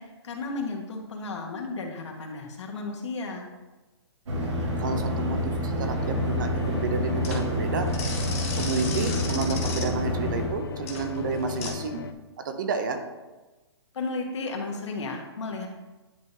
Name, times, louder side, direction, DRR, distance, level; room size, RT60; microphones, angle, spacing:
voice 1, 0.0-3.5 13.9-15.7, left 3 dB, 80° left, 1 dB, 1.4 m, -34 dB
sound 1, 4.2-10.5, equal, 80° right, 1.6 m, -28 dB
voice 2, 4.8-7.9 8.6-12.0 12.4-13.0, right 4 dB, 45° right, 7 dB, 0.7 m, -30 dB
sound 2, 6.0-12.1, left 6 dB, 55° left, 0.4 m, -38 dB
sound 3, 6.5-11.7, left 4 dB, 30° left, 0.8 m, -36 dB
10.0 x 3.7 x 2.7 m, 1.2 s
hypercardioid pair, 170°, 15 cm